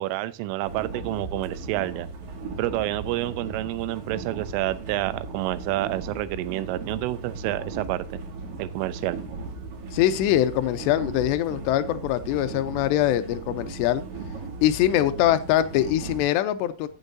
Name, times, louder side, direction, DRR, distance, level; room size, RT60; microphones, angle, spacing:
voice 1, 0.0-2.1 2.6-8.2 8.6-9.2, right 16 dB, 85° right, 15 dB, 3.2 m, -29 dB
sound 1, 0.6-16.2, right 3 dB, 55° right, 3.1 m, -37 dB
voice 2, 9.9-14.0 14.6-16.9, left 12 dB, 85° left, 10 dB, 2.5 m, -23 dB
14.5 x 8.2 x 2.7 m, 0.29 s
omnidirectional pair, 5.7 m